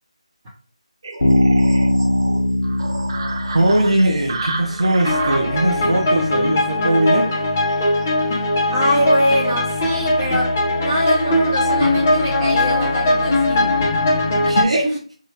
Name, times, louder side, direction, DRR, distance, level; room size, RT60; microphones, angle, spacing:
sound 1, 1.0-9.3, right 3 dB, 40° right, 0.5 m, -32 dB
Bass guitar, 1.2-4.9, left 1 dB, 55° left, 0.9 m, -20 dB
voice 1, 3.5-7.3 14.5-14.9, right 1 dB, 65° right, -1 dB, 0.8 m, -19 dB
sound 2, 5.0-14.6, left 1 dB, 20° left, 0.6 m, -19 dB
voice 2, 8.7-13.8 14.8-15.0, equal, 15° right, -7 dB, 0.9 m, -22 dB
2.9 x 2.2 x 3.3 m, 0.41 s
figure-of-eight pair, 170°, 4 cm